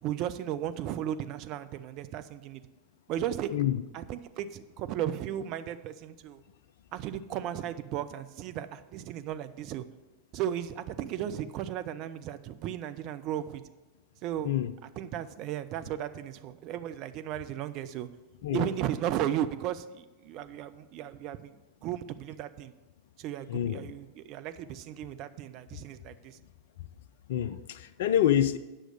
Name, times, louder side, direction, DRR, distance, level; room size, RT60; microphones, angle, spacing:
voice 1, 0.0-2.6 3.1-3.5 3.9-6.4 6.9-9.8 10.3-13.6 14.2-14.5 15.0-18.1 18.5-21.6 21.8-22.7 23.2-26.4, right 11 dB, 40° right, 10 dB, 0.6 m, -35 dB
voice 2, 23.5-23.9 27.3-28.6, left 11 dB, 55° left, 14 dB, 0.5 m, -27 dB
8.7 x 6.2 x 6.6 m, 1.2 s
figure-of-eight pair, 90°, 0 cm